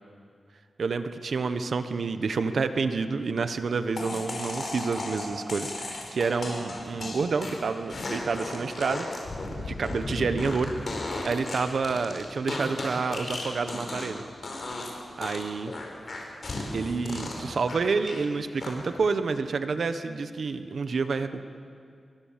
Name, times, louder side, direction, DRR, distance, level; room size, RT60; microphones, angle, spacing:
voice 1, 0.8-9.1 9.6-10.7 11.2-14.2 15.2-15.7 16.7-21.4, right 4 dB, 65° right, 9 dB, 1.1 m, -29 dB
sound 1, 4.0-14.2 14.4-14.9 15.2-18.2 18.6-19.0, left 2 dB, 45° left, 5.2 m, -35 dB
28.0 x 22.5 x 7.5 m, 2.3 s
wide cardioid pair, 135°, 0 cm